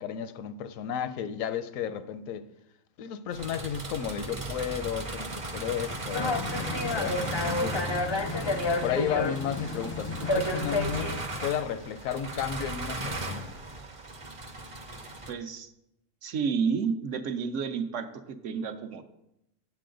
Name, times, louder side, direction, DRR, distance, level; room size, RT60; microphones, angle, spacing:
voice 1, 0.0-2.5 3.0-7.8 8.8-13.4, left 8 dB, 80° left, 1.0 m, -33 dB
sound 1, 3.3-15.3, right 2 dB, 30° right, 0.6 m, -37 dB
sound 2, 6.1-11.2, left 2 dB, 35° left, 0.4 m, -30 dB
voice 2, 15.3-15.7 16.2-19.0, right 6 dB, 70° right, 1.0 m, -31 dB
8.4 x 8.4 x 3.8 m
omnidirectional pair, 1.4 m